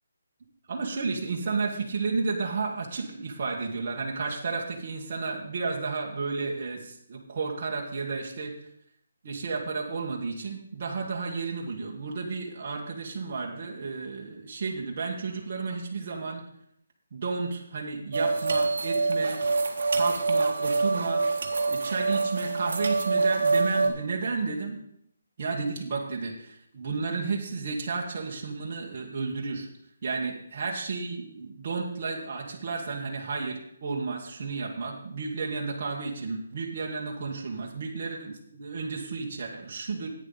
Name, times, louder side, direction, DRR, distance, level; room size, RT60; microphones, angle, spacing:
voice 1, 0.7-8.5 9.2-16.4 17.1-19.4 19.9-24.8 25.4-29.7 30.0-40.1, right 4 dB, 30° right, -2 dB, 1.5 m, -32 dB
sound 1, 18.1-23.9, right 3 dB, 50° right, 1.5 m, -26 dB
10.5 x 8.8 x 4.0 m, 0.71 s
hypercardioid pair, 175°, 0 cm